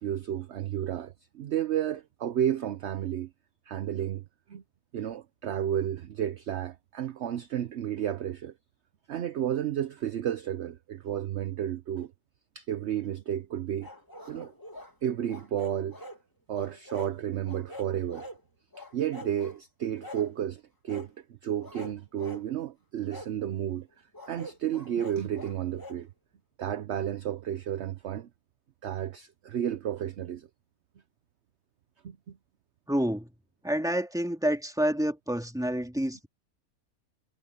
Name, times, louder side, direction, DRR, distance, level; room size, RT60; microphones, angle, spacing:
voice 1, 0.0-3.3 3.7-4.6 4.9-8.5 9.1-12.1 12.5-13.9 14.3-14.5 15.0-16.0 16.5-18.3 18.8-21.1 21.4-23.9 24.3-26.1 26.6-28.3 28.8-30.5 32.0-32.4, right 10 dB, 60° right, 0.9 m, -32 dB
sound 1, 13.8-14.9 15.3-16.2 16.5-17.1 17.4-18.4 18.7-19.6 20.0-20.3 20.9-21.1 21.6-22.4 23.1-23.3 24.1-26.0, equal, 15° left, 2.3 m, -44 dB
voice 2, 32.9-33.3 33.6-36.3, equal, ahead, 2.5 m, -28 dB
omnidirectional pair, 1.6 m